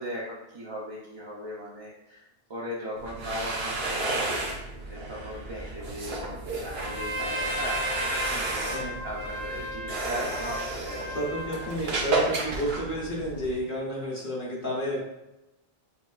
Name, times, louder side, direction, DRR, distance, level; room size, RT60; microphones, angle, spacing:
voice 1, 0.0-2.2 2.5-11.1, equal, 40° right, -6 dB, 0.4 m, -38 dB
sound 1, 3.0-13.6, right 2 dB, 75° right, 1.0 m, -32 dB
Trumpet, 6.7-11.7, equal, 25° left, 0.7 m, -35 dB
voice 2, 8.7-9.0 11.1-15.0, equal, 55° left, -5 dB, 1.2 m, -31 dB
5.9 x 2.2 x 2.4 m, 0.96 s
omnidirectional pair, 1.0 m